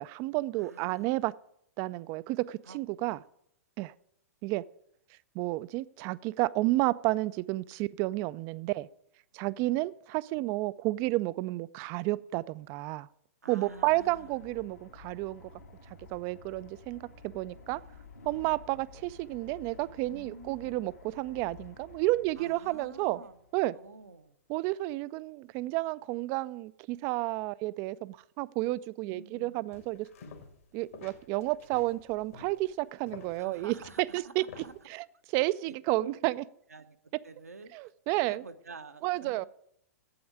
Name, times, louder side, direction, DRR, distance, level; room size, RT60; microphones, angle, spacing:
voice 1, 0.0-1.3 1.8-3.2 3.8-3.9 4.4-4.6 5.3-8.9 9.3-13.1 13.5-15.5 16.1-17.8 18.3-23.2 23.5-23.7 24.5-30.1 30.7-33.7 34.1-34.4 34.9-35.0 35.3-36.3 37.7-38.4 39.0-39.4, right 19 dB, 35° right, 19 dB, 0.4 m, -31 dB
voice 2, 0.5-1.2 2.6-2.8 9.5-9.9 13.4-14.4 20.1-20.8 22.4-23.4 23.7-24.4 29.1-29.7 33.4-34.7 35.7-36.4 36.7-37.0 37.2-39.5, right 3 dB, 80° right, 8 dB, 0.9 m, -49 dB
sound 1, 13.7-23.9, left 4 dB, 80° left, 2.2 m, -53 dB
sound 2, 29.7-30.7 30.9-34.8, left 6 dB, 60° left, 1.8 m, -50 dB
8.6 x 7.8 x 7.9 m, 0.73 s
figure-of-eight pair, 105°, 8 cm